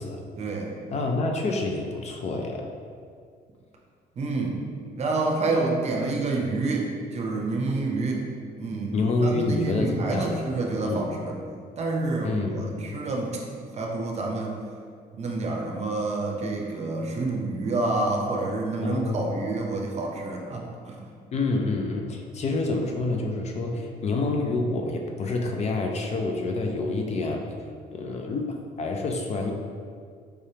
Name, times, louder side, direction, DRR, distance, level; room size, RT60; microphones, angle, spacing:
voice 1, 0.4-0.7 4.2-4.6 4.9-8.2 8.6-11.4 11.8-13.4 13.8-14.5 15.1-21.0, right 3 dB, 40° right, 0 dB, 0.7 m, -28 dB
voice 2, 0.9-2.7 8.9-10.3 10.8-11.1 12.2-12.7 18.8-19.4 21.3-27.4 27.9-29.5, left 3 dB, 40° left, 2 dB, 0.5 m, -27 dB
4.7 x 3.3 x 2.8 m, 2.1 s
cardioid pair, 110°, 17 cm